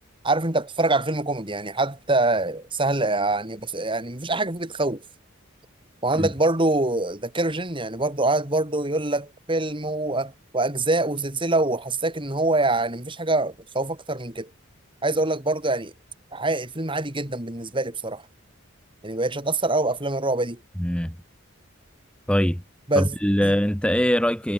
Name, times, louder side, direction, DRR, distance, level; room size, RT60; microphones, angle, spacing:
voice 1, 0.2-5.0 6.0-14.5 15.0-15.9 16.3-18.2 19.0-20.6 22.9-23.1 23.4-23.5, right 2 dB, 25° right, 3.2 m, -25 dB
voice 2, 20.8-21.2 22.3-22.6 23.0-24.5, equal, 5° left, 1.7 m, -22 dB
head